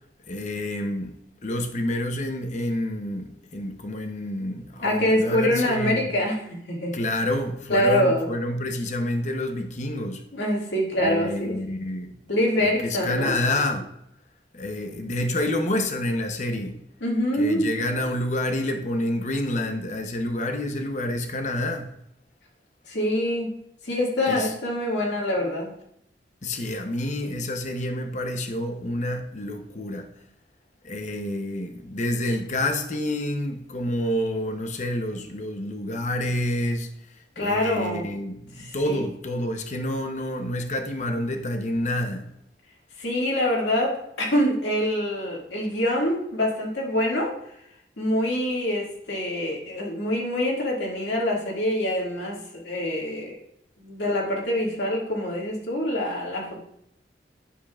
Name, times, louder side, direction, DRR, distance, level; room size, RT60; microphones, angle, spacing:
voice 1, 0.3-1.1 1.4-6.1 6.9-10.2 11.0-12.1 12.6-13.9 14.5-16.8 17.3-21.9 24.3-24.5 26.4-30.1 30.8-36.9 37.4-42.3, left 1 dB, 40° left, 0.8 m, -28 dB
voice 2, 4.8-6.9 7.7-8.3 10.3-11.6 12.3-13.3 17.0-17.7 22.9-23.5 23.8-25.7 37.4-38.0 38.6-39.0 43.0-47.3 48.0-53.4 53.8-56.6, left 1 dB, 80° left, 2.1 m, -25 dB
10.0 x 6.8 x 2.4 m
head